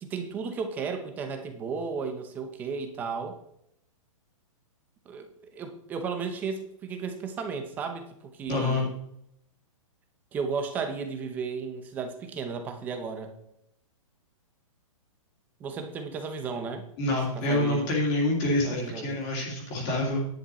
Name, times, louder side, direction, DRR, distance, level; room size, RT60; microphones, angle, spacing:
voice 1, 0.0-3.4 5.1-5.3 5.5-9.0 10.3-13.3 15.6-16.9 17.3-17.9 18.6-19.2, right 5 dB, 10° right, 7 dB, 0.8 m, -34 dB
voice 2, 8.5-8.8 17.0-20.3, left 1 dB, 20° left, -3 dB, 2.2 m, -27 dB
10.5 x 8.7 x 4.2 m, 0.74 s
hypercardioid pair, 175°, 18 cm